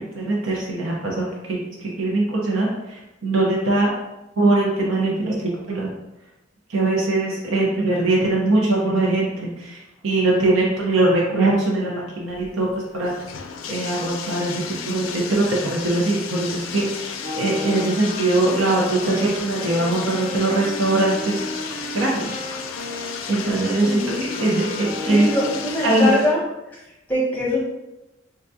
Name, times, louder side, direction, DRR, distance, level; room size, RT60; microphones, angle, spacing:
voice 1, 0.1-3.9 4.4-5.9 6.7-13.3 13.7-22.4 23.3-25.3 25.8-26.2, right 2 dB, 90° right, -3 dB, 0.8 m, -22 dB
Bathtub (filling or washing), 12.3-26.3, left 6 dB, 90° left, 0.4 m, -33 dB
Wind instrument woodwind instrument, 17.2-25.8, left 1 dB, 45° right, 0.5 m, -34 dB
voice 2, 23.8-24.3 25.1-26.4 26.7-26.8 27.1-27.6, left 1 dB, 10° left, -5 dB, 0.9 m, -23 dB
3.9 x 2.3 x 2.7 m, 0.95 s
head